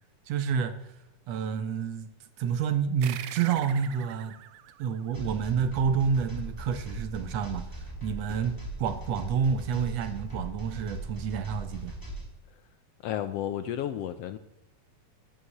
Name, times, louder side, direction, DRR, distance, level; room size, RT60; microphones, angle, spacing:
voice 1, 0.3-0.8 1.3-2.1 2.4-4.4 4.8-12.0, right 7 dB, 70° right, 1.9 m, -29 dB
sound 1, 3.0-6.0, right 12 dB, 85° right, 2.2 m, -44 dB
sound 2, 5.1-12.3, right 1 dB, 10° left, 2.1 m, -39 dB
voice 2, 13.0-14.4, left 11 dB, 75° left, 1.5 m, -32 dB
13.0 x 9.6 x 7.3 m
omnidirectional pair, 3.3 m